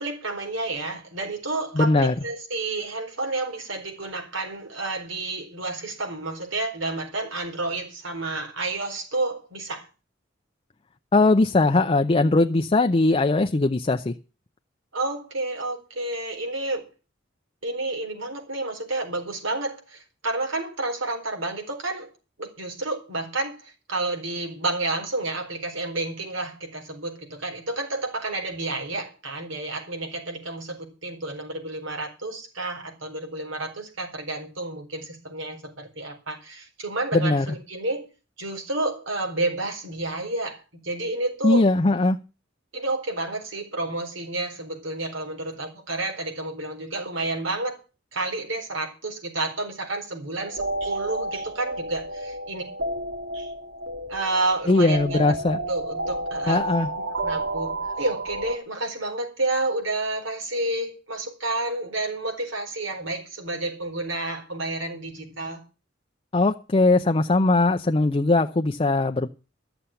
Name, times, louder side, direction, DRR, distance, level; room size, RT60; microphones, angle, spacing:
voice 1, 0.0-9.9 14.9-16.8 17.6-22.1 22.4-38.1 38.4-41.6 42.7-47.8 48.1-52.6 53.3-53.5 54.1-55.3 55.7-56.6 57.2-65.6, right 2 dB, 90° right, 4 dB, 4.3 m, -30 dB
voice 2, 1.7-2.1 11.1-14.1 37.1-37.5 41.4-42.2 54.7-55.6 56.5-56.9 66.3-69.3, left 2 dB, 30° left, 5 dB, 0.6 m, -20 dB
sound 1, 50.4-58.6, right 1 dB, 70° right, 1.8 m, -31 dB
12.5 x 7.0 x 8.9 m, 0.33 s
head